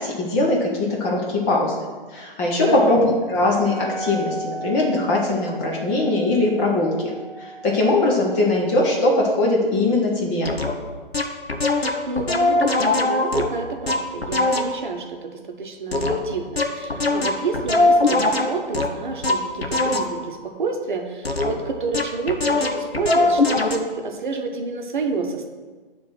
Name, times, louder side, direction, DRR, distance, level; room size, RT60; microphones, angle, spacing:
voice 1, 0.0-7.1 7.4-10.5, left 2 dB, 15° left, -2 dB, 0.7 m, -21 dB
voice 2, 2.6-3.0 11.7-25.5, right 4 dB, 55° right, 4 dB, 0.9 m, -29 dB
Wind instrument woodwind instrument, 3.4-9.2, right 3 dB, 35° right, 1.0 m, -37 dB
sound 1, 10.4-10.7 11.1-14.9 15.9-20.3 21.2-21.7 21.9-23.8, left 2 dB, 85° left, 0.9 m, -21 dB
9.0 x 3.4 x 6.1 m, 1.3 s
figure-of-eight pair, 130°, 30 cm